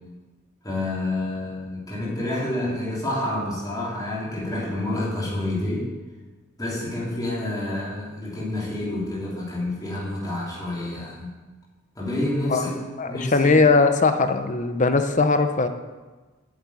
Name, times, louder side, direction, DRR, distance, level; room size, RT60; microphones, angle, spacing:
voice 1, 0.6-5.9 6.6-11.3 12.0-12.7 13.1-13.5, left 1 dB, 20° left, -6 dB, 3.5 m, -28 dB
voice 2, 13.0-15.7, left 3 dB, 35° left, 8 dB, 0.8 m, -19 dB
8.7 x 8.0 x 8.4 m, 1.3 s
head